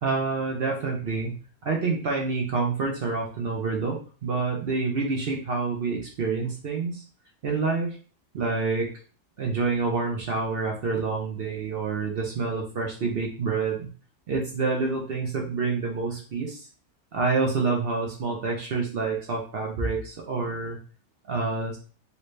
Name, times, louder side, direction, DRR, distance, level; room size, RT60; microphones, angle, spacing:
voice 1, 0.0-1.4 1.6-7.0 7.4-8.0 8.3-8.9 9.4-13.9 14.3-16.7 17.1-20.8 21.3-21.8, right 4 dB, 70° right, 0 dB, 0.5 m, -27 dB
3.2 x 2.7 x 3.1 m, 0.39 s
omnidirectional pair, 1.8 m